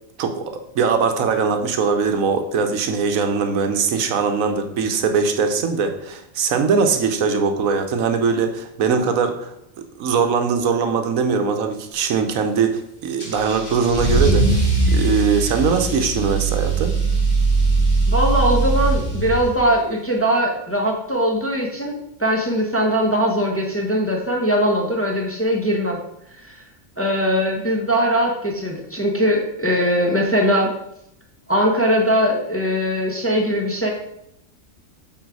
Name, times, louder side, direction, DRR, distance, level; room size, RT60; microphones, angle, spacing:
voice 1, 0.2-9.5 10.0-14.6 14.9-16.9, right 5 dB, 80° right, 6 dB, 1.2 m, -21 dB
Car / Engine starting / Accelerating revving vroom, 13.2-19.7, right 3 dB, 40° left, 3.1 m, -20 dB
voice 2, 18.1-26.0 26.3-26.6 27.0-30.7 31.5-33.9, equal, 10° left, 0 dB, 0.9 m, -20 dB
8.0 x 4.0 x 4.7 m, 0.79 s
omnidirectional pair, 1.4 m